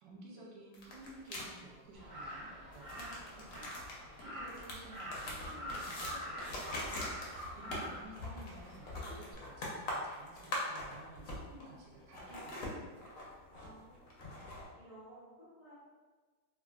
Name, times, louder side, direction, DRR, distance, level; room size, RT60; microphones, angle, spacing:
voice 1, 0.0-6.8 7.5-12.8, right 2 dB, 75° right, -3 dB, 1.1 m, -54 dB
sound 1, 0.7-1.5 2.7-11.7 12.0-14.6, left 1 dB, 70° left, 0.8 m, -43 dB
Crow, 1.9-9.3, equal, 45° right, 0.6 m, -46 dB
voice 2, 13.5-14.1 14.7-15.7, right 1 dB, 90° left, -12 dB, 0.3 m, -56 dB
3.0 x 2.4 x 2.3 m, 1.4 s
omnidirectional pair, 2.1 m